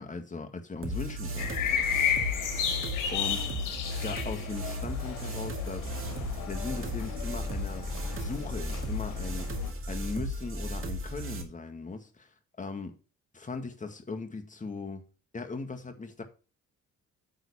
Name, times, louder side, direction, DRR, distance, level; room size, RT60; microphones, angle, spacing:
voice 1, 0.0-1.5 3.1-3.5 4.0-5.9 6.5-7.9 8.2-9.5 9.9-12.9 13.3-15.0 15.3-16.2, left 4 dB, 25° left, 2.0 m, -38 dB
sound 1, 0.8-11.4, right 1 dB, 45° right, 2.2 m, -35 dB
sound 2, 1.4-9.7, left 8 dB, 85° left, 1.8 m, -33 dB
9.3 x 4.1 x 6.9 m
cardioid pair, 90°, 30 cm